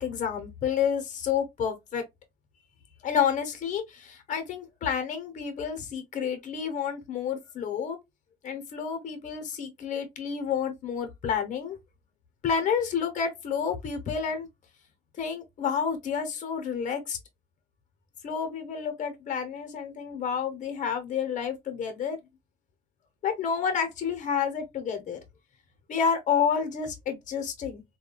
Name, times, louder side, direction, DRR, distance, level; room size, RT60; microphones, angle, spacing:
voice 1, 0.0-2.0 3.0-8.0 8.4-11.8 12.4-14.5 15.2-17.2 18.2-22.2 23.2-25.2 25.9-27.8, left 7 dB, 50° left, 0.9 m, -29 dB
3.5 x 2.2 x 2.2 m
cardioid pair, 110°, 17 cm